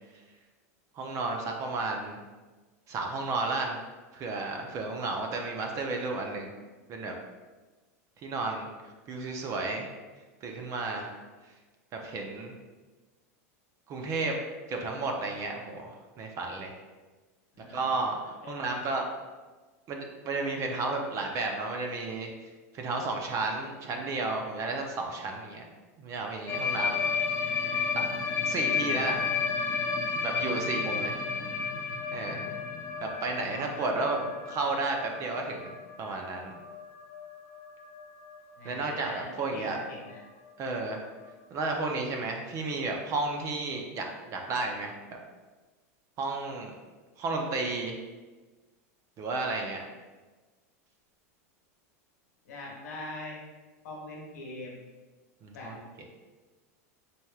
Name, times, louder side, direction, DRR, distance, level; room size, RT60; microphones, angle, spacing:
voice 1, 0.9-2.2 2.9-3.8 4.1-6.5 6.9-7.1 8.2-8.7 9.1-9.9 10.4-11.1 11.9-12.5 13.9-14.3 14.7-16.8 17.7-19.1 19.9-22.3 22.7-25.6 26.0-27.0 27.9-28.0 28.4-29.2 30.2-31.2 32.1-32.5 33.0-34.2 34.5-36.5 38.6-39.8 40.6-41.1 41.5-45.0 46.2-46.7 47.2-48.0 49.2-49.8 55.4-56.0, right 3 dB, 40° right, 2 dB, 0.6 m, -32 dB
voice 2, 18.4-18.8 23.8-24.0 27.4-27.9 31.3-31.5 33.4-34.2 38.6-40.2 52.4-53.4 53.8-54.8 55.5-55.7, left 2 dB, 80° left, -3 dB, 1.2 m, -44 dB
sound 1, 26.5-38.4 38.6-38.8 39.1-39.4 39.7-39.8 40.1-40.2 41.3-41.4, left 5 dB, 30° left, 0.6 m, -32 dB
4.2 x 3.3 x 2.4 m, 1.3 s
hypercardioid pair, 115°, 8 cm